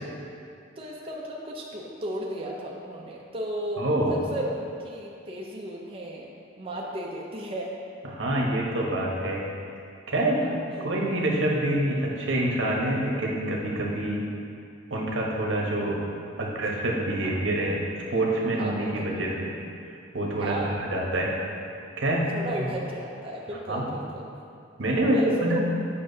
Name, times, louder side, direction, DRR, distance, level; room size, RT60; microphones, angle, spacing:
voice 1, 0.8-7.7 10.4-10.9 16.5-16.6 17.2-17.3 18.6-19.1 20.4-20.7 22.3-24.3 25.1-25.6, right 1 dB, 30° right, -3 dB, 0.5 m, -35 dB
voice 2, 3.8-4.2 8.0-9.5 10.1-10.6 10.8-14.2 14.9-16.0 16.4-17.8 18.1-19.5 20.1-21.3 22.0-22.7 23.7-23.9 24.8-25.6, right 1 dB, 75° right, -2 dB, 1.0 m, -26 dB
8.5 x 5.5 x 2.7 m, 2.5 s
head